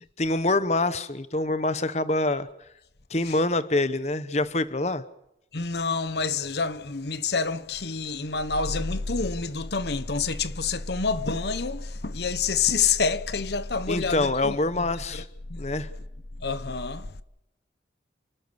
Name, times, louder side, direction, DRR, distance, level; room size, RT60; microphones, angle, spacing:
voice 1, 0.2-2.5 3.1-5.0 13.9-15.2 15.6-15.9, left 2 dB, 40° left, 1.0 m, -25 dB
voice 2, 5.5-15.2 15.5-15.7 16.4-17.2, left 5 dB, 70° left, 1.0 m, -28 dB
29.5 x 12.5 x 8.1 m
head